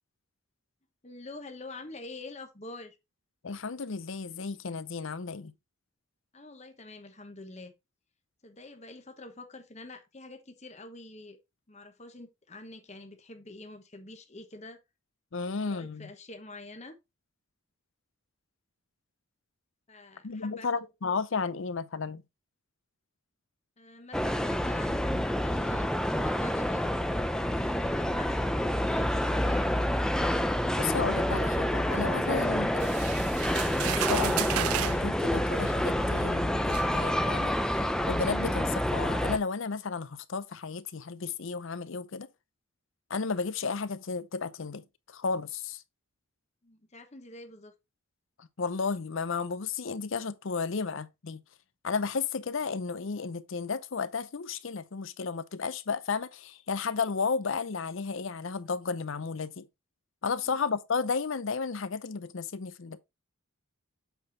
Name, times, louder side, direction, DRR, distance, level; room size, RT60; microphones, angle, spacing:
voice 1, 1.0-3.0 6.3-7.7 8.4-11.4 11.7-14.8 15.5-17.0 19.9-20.7 23.8-29.7 46.6-47.7 60.5-60.6, left 2 dB, 30° left, 1.1 m, -46 dB
voice 2, 3.4-5.5 15.3-16.1 20.2-22.2 30.8-32.9 33.8-37.5 38.1-42.3 43.1-45.8 48.4-51.4 51.8-59.7 60.2-63.0, left 5 dB, 60° left, 0.6 m, -33 dB
sound 1, 24.1-39.4, equal, 5° left, 0.4 m, -28 dB
sound 2, 32.8-35.0 36.0-36.1 36.7-36.9, right 14 dB, 85° right, 0.3 m, -33 dB
8.1 x 4.1 x 4.0 m
head